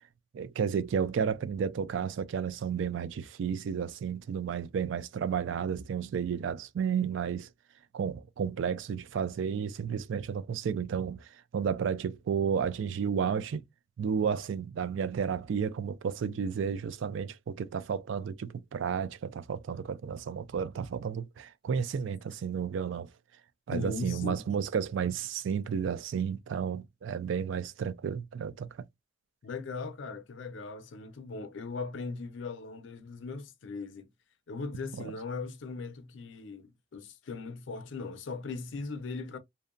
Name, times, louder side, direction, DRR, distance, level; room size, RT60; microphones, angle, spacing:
voice 1, 0.3-7.5 7.9-13.6 14.0-23.1 23.7-28.7 35.0-35.1, right 7 dB, 70° right, 0.3 m, -32 dB
voice 2, 23.7-24.4 29.4-34.1 34.5-39.4, left 3 dB, 65° left, 0.5 m, -39 dB
2.6 x 2.1 x 2.4 m
head